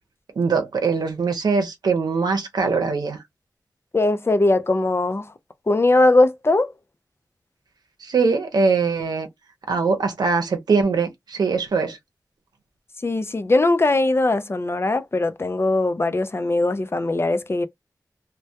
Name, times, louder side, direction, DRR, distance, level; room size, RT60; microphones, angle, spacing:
voice 1, 0.4-3.2 8.0-9.3 9.7-12.0, right 4 dB, 90° right, 0.6 m, -22 dB
voice 2, 3.9-5.3 5.7-6.7 13.0-17.7, left 2 dB, 35° left, 0.4 m, -20 dB
2.1 x 2.1 x 2.7 m
cardioid pair, 50°, 7 cm